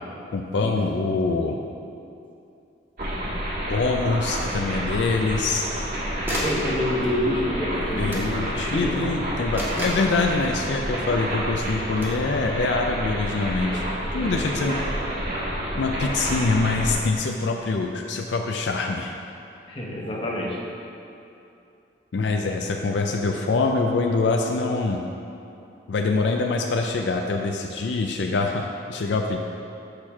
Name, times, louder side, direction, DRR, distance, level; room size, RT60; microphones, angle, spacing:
voice 1, 0.3-1.6 3.7-5.7 7.9-13.8 14.1-14.8 15.8-19.2 22.1-25.0 25.9-29.4, left 3 dB, 75° left, 2 dB, 0.4 m, -24 dB
sound 1, 3.0-3.1 5.5-5.9 6.3-6.7 8.1-8.3 9.6-10.1 12.0-12.2, equal, 10° right, 1.2 m, -31 dB
sound 2, 3.0-16.9, equal, 50° right, 1.6 m, -29 dB
voice 2, 6.4-8.2 8.5-9.0 13.7-13.8 14.1-14.9 19.7-20.6, left 1 dB, 30° left, -3 dB, 1.0 m, -28 dB
6.7 x 4.4 x 5.8 m, 2.7 s
head